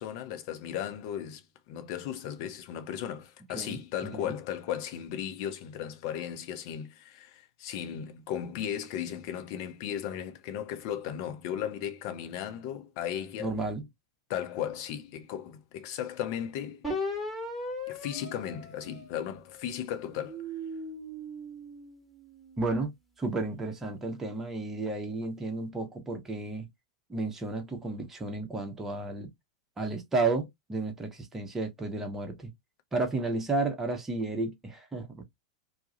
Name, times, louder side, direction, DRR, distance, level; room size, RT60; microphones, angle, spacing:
voice 1, 0.0-13.5 14.3-16.9 17.9-20.4, left 9 dB, 45° left, 0.5 m, -36 dB
voice 2, 3.5-4.3 13.4-13.9 22.6-22.9 23.2-26.7 27.1-29.3 29.8-32.5 32.9-35.2, right 3 dB, 15° right, 0.6 m, -32 dB
sound 1, 16.8-19.5 20.1-22.6, left 1 dB, 5° left, 1.0 m, -38 dB
2.2 x 2.0 x 2.7 m
figure-of-eight pair, 90°, 3 cm